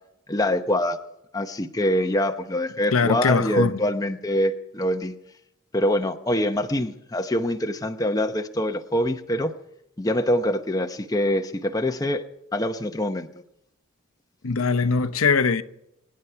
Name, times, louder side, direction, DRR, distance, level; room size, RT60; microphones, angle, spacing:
voice 1, 0.3-1.0 1.3-5.1 5.7-9.5 10.0-12.2 12.5-13.3, left 1 dB, 15° left, 0.8 m, -24 dB
voice 2, 2.9-3.8 14.4-15.6, left 4 dB, 80° left, 0.8 m, -21 dB
25.0 x 10.5 x 4.6 m
head